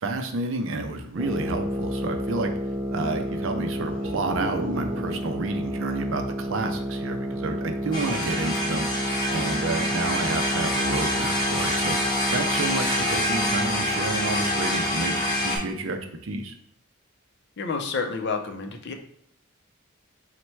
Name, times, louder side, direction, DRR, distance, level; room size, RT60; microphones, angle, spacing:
voice 1, 0.0-2.5 2.9-8.9 9.3-12.0 12.3-16.6, right 3 dB, 65° right, 5 dB, 0.5 m, -30 dB
sound 1, 1.2-15.7, equal, 10° right, 0.3 m, -31 dB
sound 2, 3.7-7.5 7.8-7.9, right 1 dB, 40° right, 0.9 m, -36 dB
sound 3, 7.9-15.6, left 1 dB, 20° left, 0.8 m, -26 dB
voice 2, 17.6-18.9, left 4 dB, 55° left, 4 dB, 0.5 m, -29 dB
4.2 x 2.1 x 4.5 m, 0.66 s
head